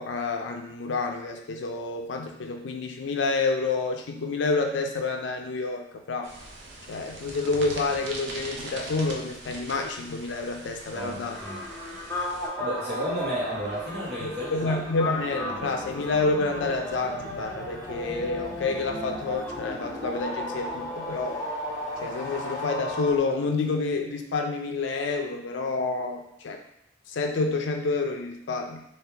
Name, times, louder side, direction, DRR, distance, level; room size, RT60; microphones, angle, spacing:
voice 1, 0.0-6.3 6.9-11.4 14.2-21.4 22.0-26.6 27.1-28.8, left 3 dB, 70° left, 3 dB, 0.4 m, -29 dB
sound 1, 6.2-12.5, right 2 dB, 70° right, 0.6 m, -41 dB
voice 2, 10.9-11.7 12.6-14.8 15.6-15.7, equal, 55° right, -6 dB, 1.3 m, -32 dB
sound 2, 11.3-23.1, left 1 dB, 10° left, 0.6 m, -35 dB
sound 3, 12.7-23.2, right 1 dB, 20° right, 0.9 m, -42 dB
3.2 x 2.8 x 3.4 m, 0.76 s
head